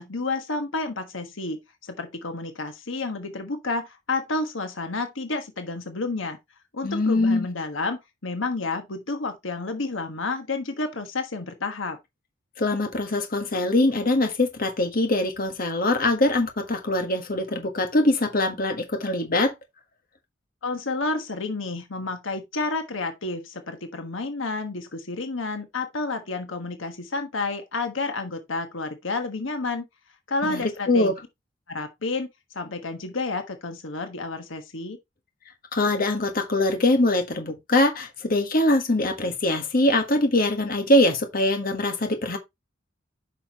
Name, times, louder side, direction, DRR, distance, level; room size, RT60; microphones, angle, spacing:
voice 1, 0.0-6.4 6.7-12.0 20.6-29.9 30.3-31.1 31.7-32.3 32.5-35.0, left 3 dB, 70° left, 1.3 m, -30 dB
voice 2, 6.8-7.5 12.6-19.5 30.4-31.1 35.7-42.4, left 1 dB, 45° left, 1.5 m, -23 dB
8.6 x 5.8 x 2.9 m
head